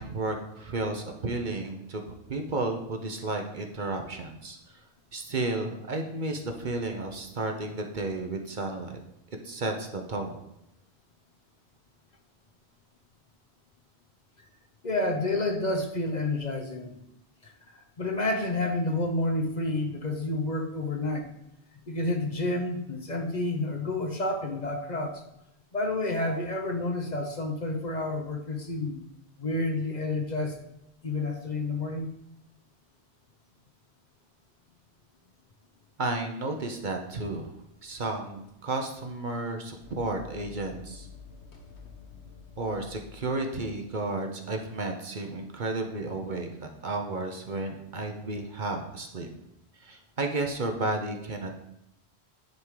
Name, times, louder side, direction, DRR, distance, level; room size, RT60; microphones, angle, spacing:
voice 1, 0.0-2.0 2.3-4.6 5.1-8.9 9.4-10.4 36.0-37.5 37.8-41.1 42.6-49.3 49.8-51.5, right 2 dB, 50° right, 4 dB, 0.9 m, -32 dB
voice 2, 14.8-17.0 18.0-21.2 21.9-25.2 25.7-29.0 29.4-30.6 31.0-32.1, left 2 dB, 45° left, 3 dB, 0.9 m, -29 dB
sound 1, 38.5-38.6 39.7-43.4, left 6 dB, 75° left, 1.5 m, -48 dB
10.5 x 3.7 x 4.7 m, 0.83 s
omnidirectional pair, 1.1 m